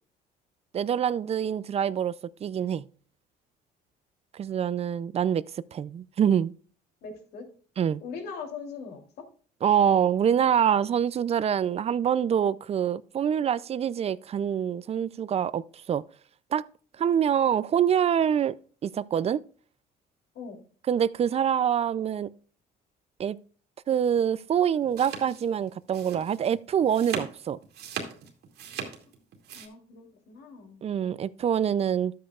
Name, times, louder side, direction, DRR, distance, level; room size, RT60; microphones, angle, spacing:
voice 1, 0.7-2.8 4.3-5.4 5.7-6.5 7.8-8.0 9.6-15.6 15.9-16.0 16.5-16.6 17.0-18.6 18.8-19.4 20.9-22.3 23.2-23.4 23.9-27.6 30.8-32.1, right 8 dB, 40° right, 0.5 m, -25 dB
voice 2, 7.0-7.5 8.0-9.3 20.3-20.6 29.5-30.8, left 5 dB, 70° left, 3.1 m, -41 dB
sound 1, 24.5-29.7, right 7 dB, 75° right, 2.3 m, -38 dB
12.5 x 8.6 x 2.4 m
cardioid pair, 110°, 17 cm